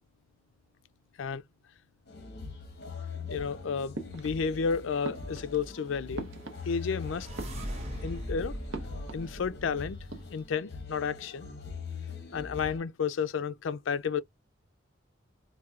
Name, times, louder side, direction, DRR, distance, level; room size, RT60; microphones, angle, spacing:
sound 1, 2.1-12.8, left 4 dB, 55° left, 1.0 m, -43 dB
voice 1, 3.3-6.3 6.7-7.3 8.0-8.6 9.1-10.0 10.3-11.5 12.3-14.2, left 6 dB, 75° left, 0.4 m, -32 dB
sound 2, 3.9-4.7 5.0-7.0 7.3-8.1 8.7-9.7 9.9-10.5, right 2 dB, 70° right, 0.7 m, -43 dB
sound 3, 6.3-10.5, equal, 30° right, 1.0 m, -40 dB
4.1 x 2.2 x 2.3 m
head